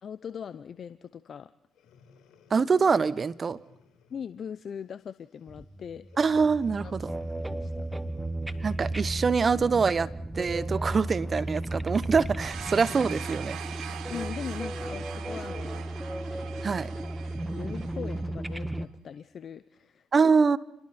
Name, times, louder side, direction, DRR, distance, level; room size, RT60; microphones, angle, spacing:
voice 1, 0.0-1.5 4.1-6.1 6.8-6.9 7.4-7.9 13.9-15.9 17.4-20.1, left 7 dB, 55° left, 14 dB, 0.7 m, -40 dB
Breathing, 1.7-4.4 5.0-5.2 6.0-8.9 10.4-13.2 14.6-17.3 18.0-18.1, left 5 dB, 70° left, 4.6 m, -55 dB
voice 2, 2.5-3.6 6.2-7.1 8.6-13.6 16.6-16.9 20.1-20.6, right 5 dB, 40° right, 17 dB, 1.0 m, -24 dB
sound 1, 5.5-18.9, right 1 dB, 10° right, 1.2 m, -34 dB
sound 2, 12.4-18.3, right 9 dB, 70° right, 1.7 m, -42 dB
29.5 x 20.5 x 4.3 m, 0.78 s
supercardioid pair, 60°, 0 cm